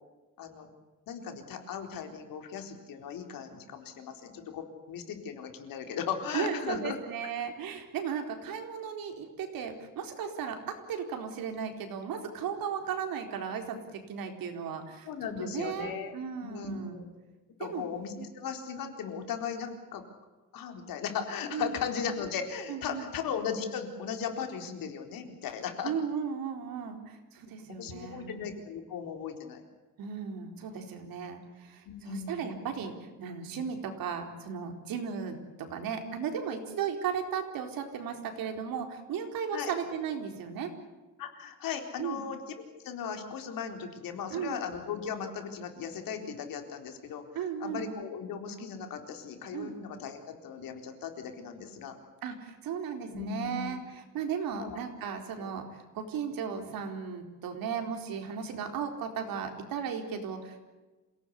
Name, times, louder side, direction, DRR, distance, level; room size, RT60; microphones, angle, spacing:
voice 1, 0.4-0.7 1.1-7.0 15.1-16.1 16.4-17.1 17.6-20.0 20.5-25.9 27.8-29.6 31.8-32.5 39.5-39.7 41.2-47.2 47.6-52.0 53.1-53.7 54.5-54.8 55.4-55.5, left 7 dB, 80° left, 5 dB, 4.2 m, -37 dB
voice 2, 6.3-17.0 17.6-17.9 21.5-21.8 22.7-23.1 25.8-28.3 30.0-40.7 42.0-42.2 44.3-44.6 47.3-47.9 49.5-49.8 52.2-60.7, right 7 dB, 85° right, 5 dB, 4.2 m, -36 dB
27.5 x 18.0 x 8.4 m, 1.2 s
cardioid pair, 170°, 34 cm